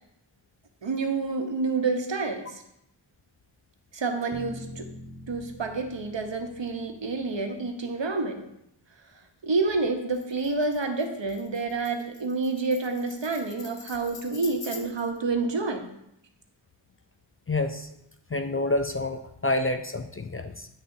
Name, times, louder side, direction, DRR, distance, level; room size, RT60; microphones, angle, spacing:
voice 1, 0.8-2.6 3.9-4.9 5.3-8.4 9.4-15.9, right 3 dB, 65° right, 5 dB, 1.0 m, -28 dB
sound 1, 4.3-8.4, equal, 10° right, 0.8 m, -45 dB
Tambourine, 10.1-15.2, left 5 dB, 50° left, 0.8 m, -46 dB
voice 2, 17.5-17.9 18.3-20.7, left 2 dB, 30° left, 7 dB, 0.4 m, -28 dB
9.3 x 6.5 x 2.7 m, 0.77 s
wide cardioid pair, 60°, 47 cm